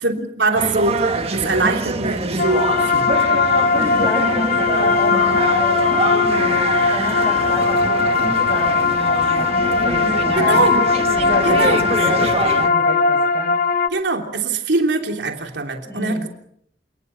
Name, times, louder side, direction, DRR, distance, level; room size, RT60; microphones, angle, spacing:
voice 1, 0.0-3.1 10.4-10.8 11.4-11.8 13.9-16.3, right 2 dB, 80° right, 3 dB, 3.3 m, -22 dB
sound 1, 0.5-12.7, right 2 dB, 35° right, 1.8 m, -25 dB
sound 2, 2.4-13.9, left 4 dB, 55° left, 1.0 m, -19 dB
voice 2, 3.7-10.6 11.2-13.6 15.8-16.3, left 1 dB, 15° left, 3 dB, 7.3 m, -30 dB
28.0 x 20.0 x 5.7 m, 0.69 s
head